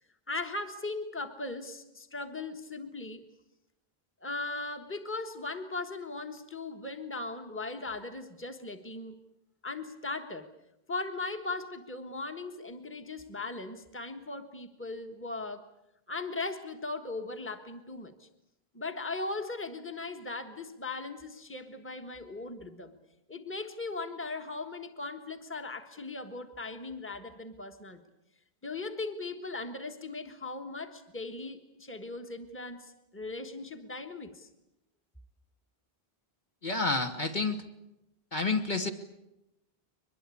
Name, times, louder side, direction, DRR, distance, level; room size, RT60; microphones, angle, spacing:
voice 1, 0.3-3.3 4.2-9.2 9.6-10.5 10.9-15.6 16.1-18.3 18.7-22.9 23.3-28.0 28.6-34.5, left 3 dB, 10° left, 5 dB, 1.5 m, -38 dB
voice 2, 36.6-37.6 38.3-38.9, left 3 dB, 50° left, 4 dB, 1.7 m, -29 dB
23.0 x 21.5 x 8.5 m, 0.89 s
omnidirectional pair, 1.0 m